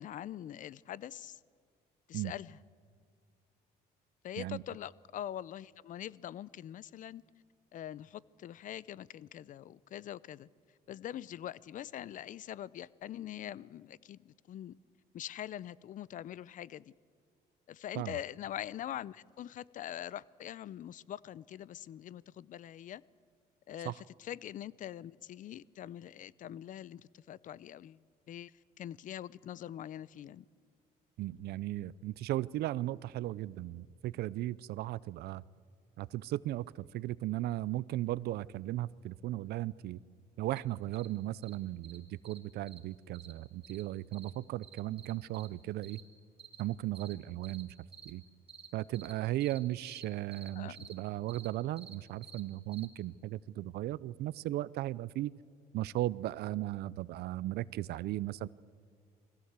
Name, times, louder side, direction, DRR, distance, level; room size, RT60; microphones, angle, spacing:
voice 1, 0.0-1.4 2.1-2.6 4.2-7.2 7.7-10.5 10.9-14.7 15.1-16.8 17.7-23.0 23.7-28.0 28.3-28.5 28.8-30.4 50.6-50.9, left 11 dB, 50° left, 22 dB, 0.5 m, -43 dB
voice 2, 31.2-35.4 36.0-40.0 40.4-46.0 46.6-47.7 48.1-48.2 48.7-55.3 55.7-58.5, right 15 dB, 70° right, 20 dB, 0.5 m, -36 dB
sound 1, 40.5-40.6 40.9-41.1 41.4-41.5 41.8-42.0 42.2-42.4 42.7-42.8 43.1-43.3 43.6-43.8 44.1-44.3 44.6-45.5 45.8-46.0 46.4-46.6 46.9-47.1 47.4-47.6 47.9-48.1 48.5-48.7 48.9-49.1 49.4-49.6 49.9-50.0 50.3-50.5 50.7-50.9 51.3-51.5 51.8-51.9 52.2-52.4 52.7-52.9, right 6 dB, 35° right, 2.7 m, -50 dB
21.5 x 16.0 x 8.2 m, 2.2 s
cardioid pair, 110°, 17 cm